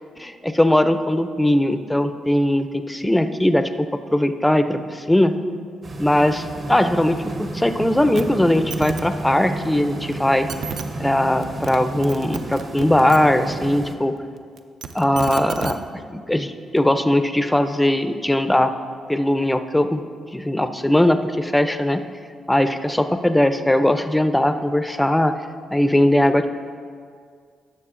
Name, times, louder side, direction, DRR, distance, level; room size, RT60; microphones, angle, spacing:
voice 1, 0.2-5.3 6.0-10.5 11.0-14.1 14.9-15.8 16.1-18.7 19.1-20.0 20.3-22.0 22.5-25.3 25.7-26.5, left 1 dB, 10° left, 10 dB, 0.5 m, -19 dB
sound 1, 5.8-13.9, right 2 dB, 45° right, 1.0 m, -32 dB
sound 2, 8.2-8.3 8.5-9.0 10.1-10.2 10.5-10.8 11.4-11.8 12.0-13.2 14.6-15.7 16.8-16.9, right 6 dB, 70° right, 0.5 m, -31 dB
11.5 x 6.9 x 3.7 m, 2.1 s
cardioid pair, 90°, 0 cm